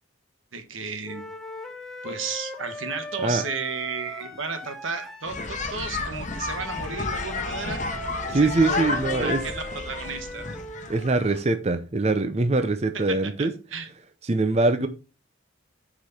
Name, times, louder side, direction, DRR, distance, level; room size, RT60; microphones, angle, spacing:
voice 1, 0.5-1.3 2.0-7.8 8.3-10.6 12.9-13.9, right 4 dB, 90° right, 1.4 m, -34 dB
sound 1, 1.0-5.3 6.3-10.9, left 1 dB, ahead, 1.1 m, -39 dB
sound 2, 5.2-11.4, left 3 dB, 40° left, 1.1 m, -31 dB
voice 2, 8.3-9.4 10.9-13.5 14.2-14.9, right 3 dB, 35° right, 0.6 m, -23 dB
6.6 x 5.0 x 5.6 m
head